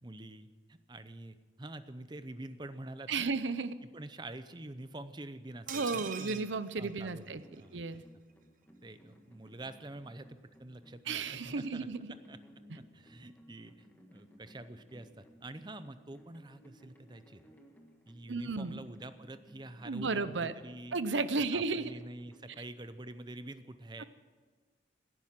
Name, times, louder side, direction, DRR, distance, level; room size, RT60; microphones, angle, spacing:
voice 1, 0.0-3.3 3.8-6.5 6.8-8.0 8.8-12.4 12.8-17.4 18.1-21.0 21.5-24.0, right 2 dB, 25° right, 12 dB, 0.6 m, -47 dB
voice 2, 3.1-3.7 5.7-7.4 7.7-8.0 11.1-12.1 18.3-18.8 19.9-20.5 20.9-21.9, right 4 dB, 90° right, 14 dB, 0.8 m, -33 dB
sound 1, 5.7-7.6 7.9-8.0 8.3-8.4, right 8 dB, 45° right, 0.9 m, -44 dB
sound 2, 7.2-22.6, equal, 10° left, 1.5 m, -60 dB
17.0 x 10.5 x 7.4 m, 1.4 s
head